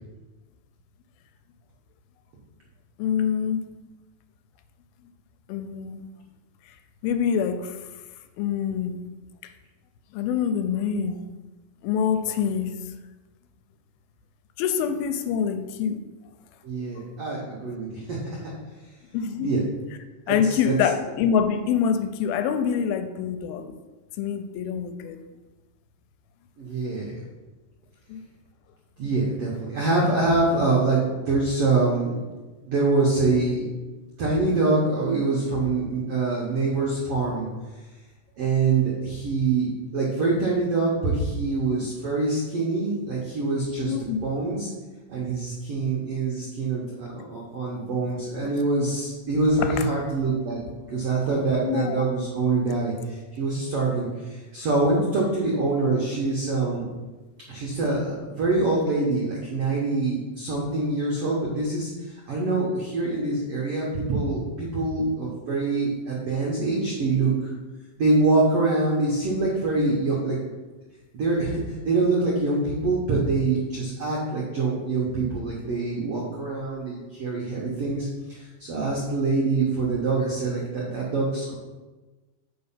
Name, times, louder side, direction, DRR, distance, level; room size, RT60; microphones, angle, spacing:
voice 1, 3.0-3.6 5.5-6.1 7.0-7.8 8.4-9.0 9.4-9.5 10.1-11.2 11.8-12.8 14.6-16.0 19.1-19.5 20.3-23.7 24.2-25.2 28.1-28.2 43.9-44.2 49.6-49.9 51.6-52.1, left 7 dB, 85° left, 9 dB, 2.4 m, -25 dB
voice 2, 16.6-18.5 19.4-19.6 20.3-20.7 26.6-27.1 29.0-32.2 32.6-33.7 34.2-37.5 38.4-43.9 44.2-44.7 45.1-50.6 50.9-56.9 57.5-67.5 68.0-70.4 71.1-81.5, right 3 dB, 85° right, -4 dB, 1.3 m, -25 dB
5.4 x 4.4 x 5.6 m, 1.2 s
omnidirectional pair, 4.2 m